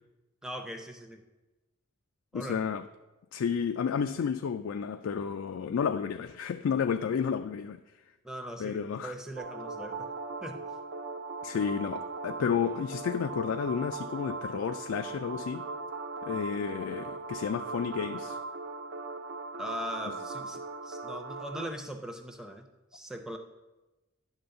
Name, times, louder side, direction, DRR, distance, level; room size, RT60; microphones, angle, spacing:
voice 1, 0.4-1.2 2.3-2.6 8.2-10.1 10.4-10.6 19.6-22.6 22.9-23.4, equal, 5° right, 4 dB, 0.6 m, -40 dB
voice 2, 2.3-2.9 3.3-7.8 8.6-9.1 11.4-15.6 16.2-18.4, left 7 dB, 85° left, 8 dB, 0.3 m, -31 dB
sound 1, 9.4-21.7, right 3 dB, 60° right, 0.6 m, -39 dB
10.5 x 3.9 x 6.8 m, 1.1 s
head